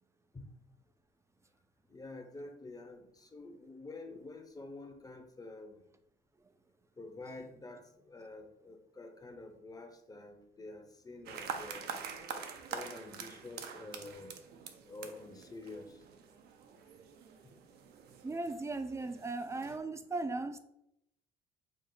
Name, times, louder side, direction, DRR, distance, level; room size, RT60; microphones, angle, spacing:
voice 1, 1.9-5.9 7.0-12.0 12.3-16.0, left 2 dB, 20° left, 0.7 m, -48 dB
sound 1, 11.3-19.8, right 6 dB, 65° right, 0.6 m, -46 dB
voice 2, 18.2-20.6, right 3 dB, 15° right, 0.4 m, -37 dB
5.1 x 2.0 x 3.9 m
supercardioid pair, 70°, 17 cm